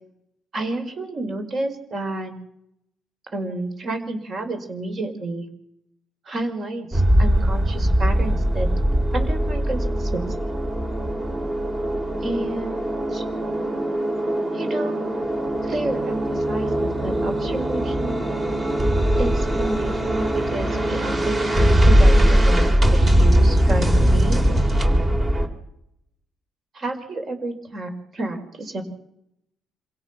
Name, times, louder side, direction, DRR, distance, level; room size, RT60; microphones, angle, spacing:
voice 1, 0.5-2.3 3.3-5.5 6.3-8.7 9.1-10.4 12.2-13.2 14.5-15.0 15.6-18.2 19.2-24.6 26.7-28.8, right 2 dB, 50° right, 6 dB, 5.5 m, -30 dB
sound 1, 6.9-25.5, equal, 25° right, 3.9 m, -20 dB
27.0 x 17.5 x 6.3 m, 0.77 s
cardioid pair, 90°, 0 cm